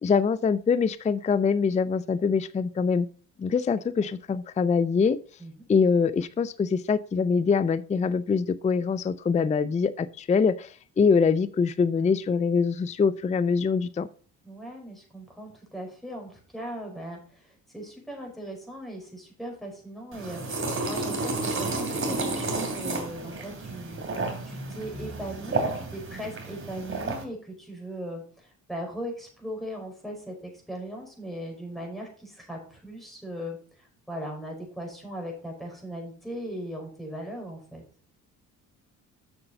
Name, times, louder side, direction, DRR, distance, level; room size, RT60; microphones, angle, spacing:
voice 1, 0.0-3.1 3.4-5.2 5.7-14.1, left 5 dB, 20° left, 16 dB, 0.4 m, -24 dB
voice 2, 14.4-24.0 24.5-37.8, equal, ahead, 0 dB, 5.0 m, -39 dB
sound 1, 20.1-27.2, right 3 dB, 35° right, 2.8 m, -31 dB
7.0 x 6.7 x 5.2 m, 0.42 s
supercardioid pair, 65°, 36 cm